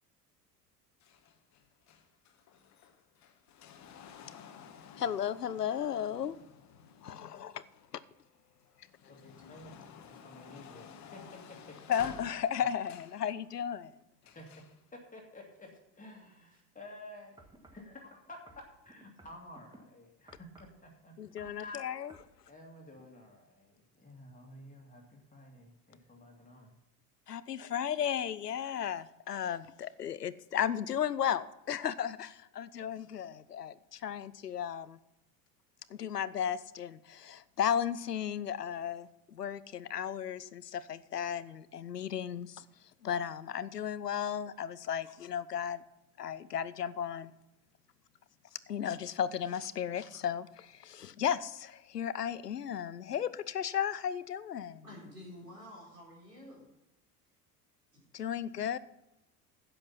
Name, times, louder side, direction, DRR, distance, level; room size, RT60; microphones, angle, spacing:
sound 1, 1.0-8.2 8.7-13.3 14.2-14.8 15.7-15.8, left 7 dB, 35° left, 1.2 m, -53 dB
voice 1, 5.0-6.4 7.0-7.6 7.9-8.0 11.9-13.9 21.2-22.1 27.3-35.0 35.9-42.6 43.0-45.8 46.2-47.3 48.7-54.8 58.1-58.8, left 9 dB, 90° left, 17 dB, 0.6 m, -35 dB
voice 2, 9.1-11.8 14.2-14.6 14.9-21.9 22.5-26.7, left 1 dB, 15° left, 1 dB, 2.2 m, -52 dB
sound 2, 17.4-17.9 18.5-19.8 20.3-20.8 21.2-21.6 22.1-22.3 22.9-23.0, right 2 dB, 10° right, 1.4 m, -58 dB
voice 3, 54.8-56.7 57.9-58.1 58.5-58.6, left 1 dB, 90° right, -5 dB, 4.3 m, -50 dB
11.0 x 7.8 x 5.7 m, 0.88 s
figure-of-eight pair, 70°, 47 cm